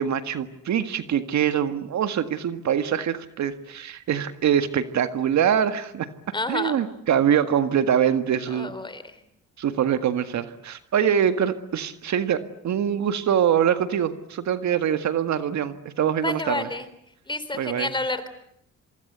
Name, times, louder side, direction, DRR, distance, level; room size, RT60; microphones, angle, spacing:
voice 1, 0.0-6.1 6.5-8.7 9.6-16.7 17.6-17.9, right 9 dB, 65° right, 10 dB, 1.9 m, -24 dB
voice 2, 6.3-6.8 8.5-9.2 16.2-16.9 17.3-18.3, left 2 dB, 15° left, 12 dB, 3.9 m, -29 dB
26.5 x 24.5 x 8.1 m, 0.74 s
cardioid pair, 90°, 30 cm